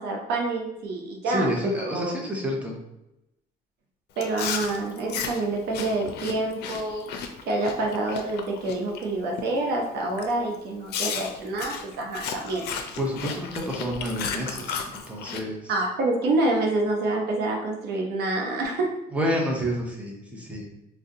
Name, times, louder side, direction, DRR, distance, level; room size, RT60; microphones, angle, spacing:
voice 1, 0.0-2.1 4.2-7.0 7.5-12.6 15.7-18.9, right 2 dB, 75° right, 0 dB, 0.7 m, -27 dB
voice 2, 1.3-2.8 13.0-15.7 19.1-20.7, equal, 10° right, -2 dB, 0.7 m, -29 dB
Chewing mastication, 4.2-9.0 9.4-9.7 10.2-10.3 10.9-15.4, left 6 dB, 75° left, 0.4 m, -34 dB
2.6 x 2.1 x 3.7 m, 0.88 s
cardioid pair, 110°, 17 cm